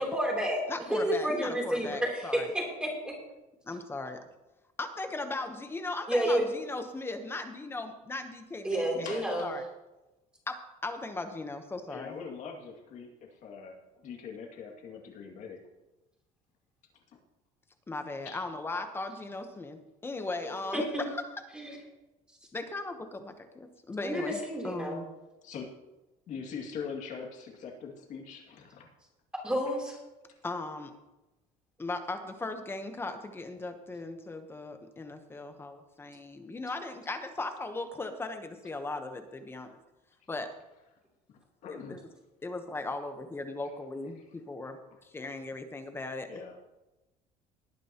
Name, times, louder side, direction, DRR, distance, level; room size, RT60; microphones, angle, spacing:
voice 1, 0.0-3.1 6.1-6.4 8.6-9.4 20.4-21.0 21.5-21.8 24.0-25.0 29.4-30.0, equal, 5° right, -1 dB, 3.3 m, -30 dB
voice 2, 0.7-2.5 3.6-4.2 4.8-9.6 10.5-10.6 10.8-12.2 17.9-21.3 22.5-25.1 30.4-30.9 31.8-39.8 40.3-40.5 41.7-42.0 42.4-46.3, left 2 dB, 15° left, 7 dB, 1.0 m, -38 dB
voice 3, 9.0-9.5 11.9-15.6 18.2-18.4 25.4-25.7 26.3-28.9 41.3-42.1 46.3-46.6, left 6 dB, 50° left, 2 dB, 2.2 m, -42 dB
19.0 x 9.1 x 2.9 m, 1.0 s
cardioid pair, 150°, 16 cm